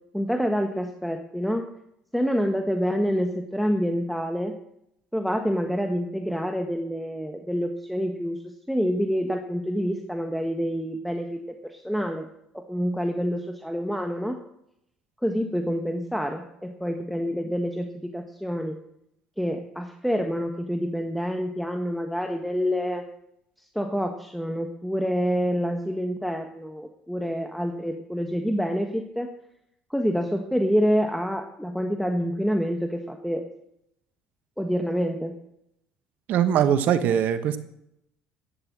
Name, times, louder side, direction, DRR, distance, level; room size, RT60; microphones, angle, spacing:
voice 1, 0.1-1.7 2.1-4.5 5.1-12.3 12.5-14.4 15.2-18.8 19.4-23.0 23.7-29.3 29.9-33.5 34.6-35.3, equal, ahead, 4 dB, 1.4 m, -27 dB
voice 2, 36.3-37.6, right 9 dB, 60° right, 11 dB, 1.2 m, -21 dB
11.5 x 9.6 x 7.4 m, 0.79 s
hypercardioid pair, 65°, 3 cm